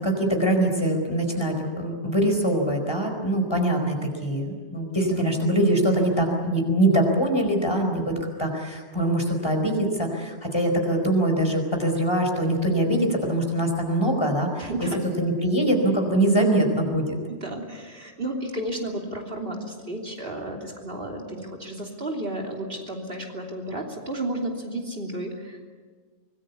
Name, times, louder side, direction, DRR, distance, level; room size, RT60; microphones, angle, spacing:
voice 1, 0.0-14.7 15.2-17.2, right 1 dB, 20° left, 3 dB, 4.6 m, -23 dB
voice 2, 14.6-15.0 17.3-25.6, right 1 dB, 50° right, 3 dB, 3.3 m, -32 dB
25.0 x 20.5 x 8.4 m, 1.5 s
omnidirectional pair, 1.2 m